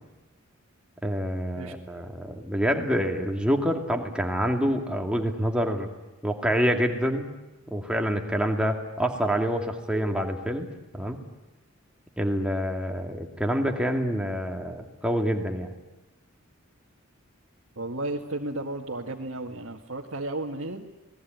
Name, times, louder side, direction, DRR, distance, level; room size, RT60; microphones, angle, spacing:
voice 1, 1.0-5.9 6.2-7.3 7.7-10.7 10.9-11.2 12.2-15.7, equal, 5° right, 2 dB, 2.5 m, -27 dB
voice 2, 17.8-20.9, right 2 dB, 70° right, -2 dB, 1.8 m, -33 dB
28.0 x 20.0 x 9.4 m, 1.0 s
head